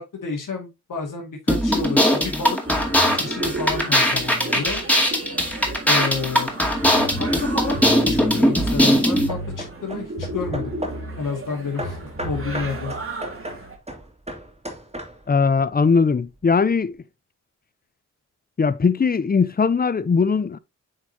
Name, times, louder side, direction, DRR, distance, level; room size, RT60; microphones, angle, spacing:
voice 1, 0.0-2.6 3.1-4.8 5.9-6.5 7.2-10.7 11.2-12.9, left 4 dB, 80° left, 2.0 m, -30 dB
sound 1, 1.5-9.3, equal, 5° left, 2.2 m, -20 dB
In a bar in Trinidad Cuba, 2.7-13.8, right 2 dB, 45° right, 2.0 m, -33 dB
Hammer / Wood, 8.7-11.1 11.8-15.4, right 1 dB, 20° right, 2.2 m, -36 dB
voice 2, 15.3-16.9 18.6-20.6, left 5 dB, 30° left, 0.5 m, -19 dB
8.6 x 4.5 x 2.8 m
wide cardioid pair, 85°, 31 cm